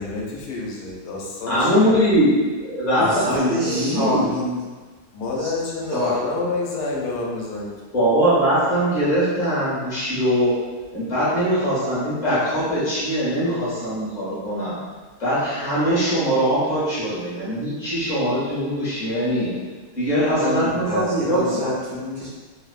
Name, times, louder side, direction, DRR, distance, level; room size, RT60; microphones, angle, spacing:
voice 1, 0.0-2.0 3.4-3.7 5.1-7.7 20.8-21.1, left 3 dB, 90° left, -3 dB, 1.1 m, -28 dB
voice 2, 1.5-4.2 7.9-10.5 10.9-14.7 15.2-19.5 20.0-21.6, equal, 30° left, -11 dB, 1.0 m, -21 dB
voice 3, 3.0-4.6 5.4-5.5 5.9-6.2 20.4-22.3, equal, 55° right, -8 dB, 0.9 m, -26 dB
2.9 x 2.0 x 2.3 m, 1.4 s
omnidirectional pair, 1.7 m